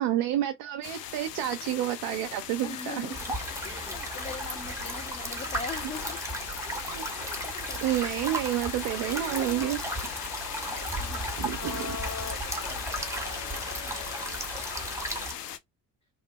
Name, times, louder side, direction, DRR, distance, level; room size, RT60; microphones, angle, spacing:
voice 1, 0.0-3.1 6.9-7.0 7.8-9.8 11.4-12.0, right 12 dB, 50° right, 0.5 m, -29 dB
sound 1, 0.8-15.6, left 10 dB, 80° left, 0.5 m, -39 dB
voice 2, 2.6-3.3 3.6-6.2 6.6-7.8 10.6-11.5 12.2-13.1 13.6-15.5, left 4 dB, 15° left, 0.3 m, -43 dB
sound 2, 3.1-15.3, right 2 dB, 5° right, 0.8 m, -35 dB
sound 3, 9.0-14.4, left 6 dB, 40° left, 1.0 m, -43 dB
3.0 x 2.0 x 2.8 m
figure-of-eight pair, 55°, 48 cm